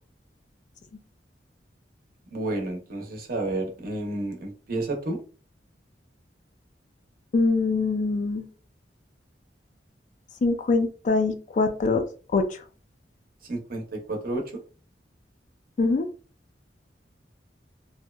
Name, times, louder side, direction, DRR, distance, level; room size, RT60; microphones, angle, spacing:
voice 1, 2.3-5.2 13.4-14.4, right 2 dB, 55° right, 0.7 m, -31 dB
voice 2, 7.3-8.5 10.4-12.0 12.3-12.6 15.8-16.1, left 3 dB, 45° left, 0.3 m, -23 dB
2.7 x 2.1 x 2.2 m
head